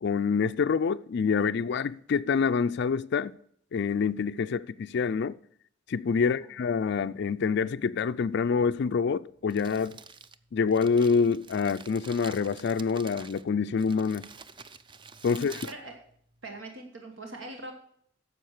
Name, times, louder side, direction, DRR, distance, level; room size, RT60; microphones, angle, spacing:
voice 1, 0.0-3.3 3.7-5.4 5.9-10.0 10.5-14.3 15.2-15.6, left 5 dB, 60° left, 0.4 m, -26 dB
voice 2, 6.2-6.5 15.3-15.9 16.4-17.7, right 2 dB, 75° right, 1.5 m, -42 dB
Crumpling crinkling, 9.3-16.6, right 5 dB, 25° right, 0.5 m, -49 dB
10.0 x 7.2 x 6.5 m
head